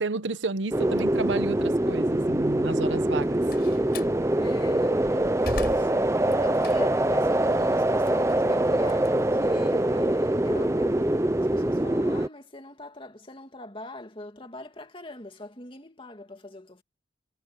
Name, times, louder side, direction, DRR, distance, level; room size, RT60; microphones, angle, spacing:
voice 1, 0.0-3.4, right 3 dB, 85° right, 1.0 m, -31 dB
sound 1, 0.7-12.3, right 1 dB, 15° right, 0.6 m, -24 dB
Slam, 3.1-4.2 4.7-7.1 7.5-9.9, left 1 dB, 55° left, 7.7 m, -39 dB
voice 2, 4.4-5.9 6.3-16.8, left 1 dB, 30° left, 2.4 m, -41 dB
head